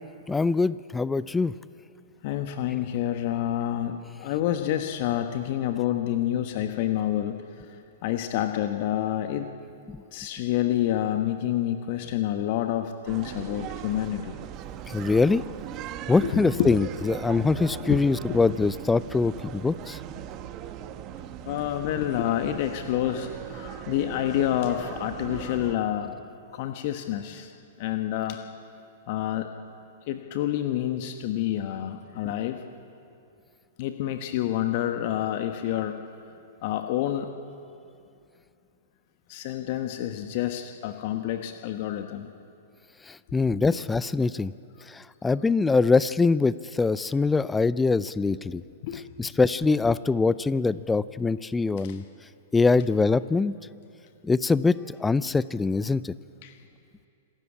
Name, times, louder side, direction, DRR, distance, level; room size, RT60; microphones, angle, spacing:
voice 1, 0.3-1.5 9.9-10.0 14.9-15.4 16.1-20.0 43.1-44.5 44.9-48.6 49.2-52.0 52.5-53.5 54.2-56.1, left 4 dB, 10° left, 17 dB, 0.5 m, -23 dB
voice 2, 2.2-7.4 8.0-9.5 10.1-14.4 16.2-16.8 17.3-17.5 17.8-18.0 18.3-18.4 21.4-26.2 26.5-27.5 27.8-28.4 29.1-29.5 30.1-32.6 33.8-36.0 36.6-37.3 39.3-42.3 43.7-43.8 48.8-49.0 51.8-52.0 56.4-56.5, left 12 dB, 50° left, 6 dB, 1.2 m, -28 dB
sound 1, 13.1-25.8, right 11 dB, 35° right, 1.2 m, -39 dB
26.5 x 13.5 x 8.7 m, 2.6 s
figure-of-eight pair, 105°, 0 cm